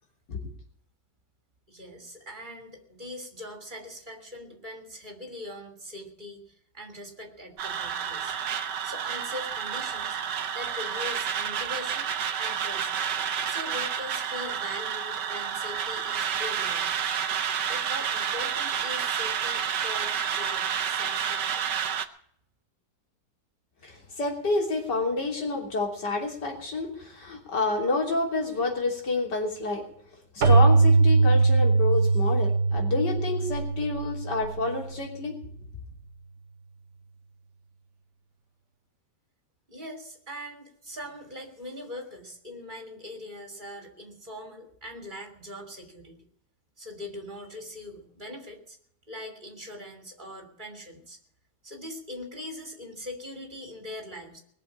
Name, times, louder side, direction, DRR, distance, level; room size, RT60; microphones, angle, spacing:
voice 1, 1.7-8.3 8.8-10.2 10.5-12.1 12.4-12.9 13.4-17.1 17.7-21.7 39.7-46.2 46.8-48.8 49.1-51.2 51.6-54.4, left 1 dB, 25° right, 4 dB, 3.3 m, -41 dB
sound 1, 7.6-22.0, right 8 dB, 85° right, 1.6 m, -30 dB
voice 2, 23.8-29.8 30.3-35.4, left 3 dB, 85° left, 1 dB, 3.8 m, -29 dB
Keyboard (musical), 30.4-34.9, right 3 dB, 50° right, 1.3 m, -21 dB
20.5 x 7.0 x 8.6 m, 0.67 s
omnidirectional pair, 1.8 m